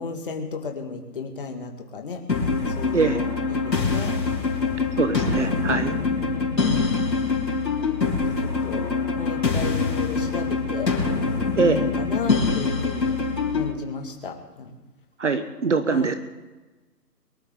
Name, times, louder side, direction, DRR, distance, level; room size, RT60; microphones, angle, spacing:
voice 1, 0.0-4.1 5.2-6.9 7.8-8.8 9.1-10.9 11.6-13.2 13.5-14.8 15.9-16.1, left 5 dB, 35° left, 3 dB, 2.0 m, -35 dB
sound 1, 2.3-13.7, left 4 dB, 90° left, 3.9 m, -24 dB
voice 2, 5.0-5.9 11.6-11.8 15.2-16.1, right 4 dB, 45° right, 9 dB, 1.1 m, -23 dB
23.5 x 12.5 x 3.8 m, 1.2 s
hypercardioid pair, 165°, 49 cm